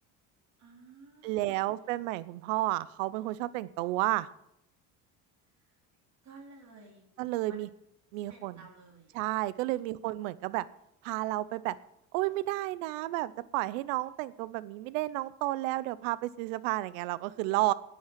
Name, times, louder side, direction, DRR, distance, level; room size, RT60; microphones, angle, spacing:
voice 1, 0.6-1.9 5.5-5.8 6.2-7.0 7.5-7.6 8.3-9.2 9.7-9.8, right 4 dB, 45° right, 0 dB, 3.8 m, -53 dB
voice 2, 1.2-4.3 7.2-7.7 8.1-8.6 9.1-10.7 11.0-11.8 12.1-17.7, right 17 dB, 90° right, 18 dB, 0.7 m, -31 dB
10.5 x 9.5 x 7.4 m, 0.81 s
supercardioid pair, 85°, 38 cm